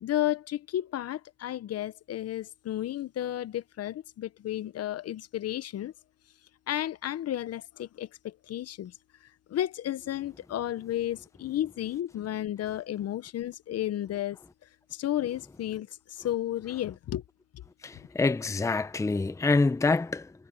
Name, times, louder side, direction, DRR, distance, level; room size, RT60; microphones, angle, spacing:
voice 1, 0.0-5.9 6.7-8.9 9.5-14.4 14.9-15.9 16.2-17.2, left 12 dB, 45° left, 1.0 m, -32 dB
voice 2, 17.8-20.3, left 3 dB, 10° left, 0.8 m, -26 dB
supercardioid pair, 100°, 35 cm